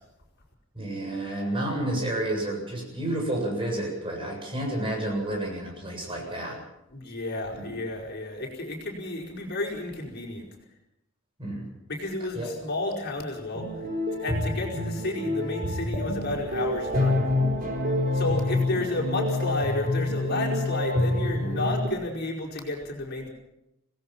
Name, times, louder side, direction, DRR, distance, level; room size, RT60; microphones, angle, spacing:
voice 1, 0.7-6.6 7.5-7.7 11.4-11.6 12.4-12.5, right 1 dB, 25° right, 0 dB, 7.6 m, -30 dB
voice 2, 6.9-10.5 11.9-13.7 14.2-17.2 18.1-23.3, left 2 dB, 50° left, -1 dB, 5.0 m, -31 dB
sound 1, 13.5-21.9, left 2 dB, 45° right, 4.6 m, -27 dB
26.0 x 18.0 x 6.0 m, 0.89 s
head